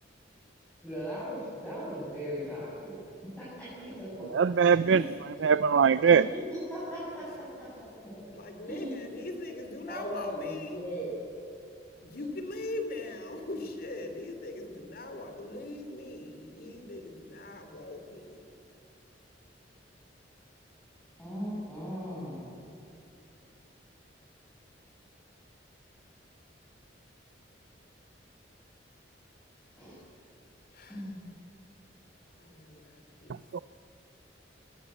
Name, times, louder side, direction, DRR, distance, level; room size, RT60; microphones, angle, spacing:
voice 1, 0.8-3.0 3.2-3.9 4.8-5.1 6.2-7.7 8.7-9.0 9.9-11.1 21.2-22.6 29.8-30.0 30.9-31.3, equal, 10° left, -10 dB, 7.4 m, -38 dB
voice 2, 4.3-5.0 5.4-6.2 33.5-33.6, right 6 dB, 80° right, 16 dB, 0.4 m, -21 dB
voice 3, 8.3-10.9 12.0-18.4 30.7-31.1 32.4-33.3, left 2 dB, 55° left, 6 dB, 2.9 m, -40 dB
21.5 x 19.0 x 8.3 m, 2.8 s
head